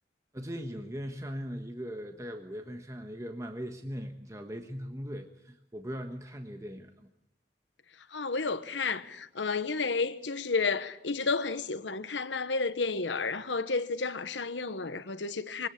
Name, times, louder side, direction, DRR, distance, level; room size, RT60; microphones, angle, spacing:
voice 1, 0.3-7.1, equal, 15° right, 1.4 m, -39 dB
voice 2, 8.1-15.7, left 4 dB, 85° left, 1.2 m, -31 dB
23.5 x 18.0 x 8.5 m
head